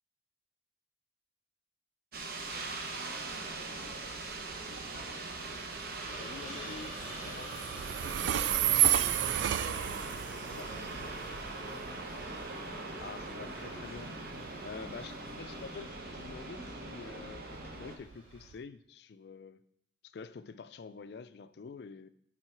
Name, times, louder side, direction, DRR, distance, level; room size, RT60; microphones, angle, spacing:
sound 1, 2.1-18.0, right 2 dB, 55° right, 0.9 m, -42 dB
Train, 3.8-18.6, right 11 dB, 85° right, 0.3 m, -34 dB
Hiss, 5.9-18.5, equal, 35° right, 2.7 m, -50 dB
voice 1, 6.2-7.6 10.6-10.8 13.0-14.1 14.6-19.6 20.0-22.1, left 5 dB, 65° left, 13 dB, 0.4 m, -47 dB
voice 2, 8.5-12.2, right 1 dB, 20° right, -7 dB, 3.3 m, -50 dB
8.9 x 3.8 x 4.5 m, 0.73 s
head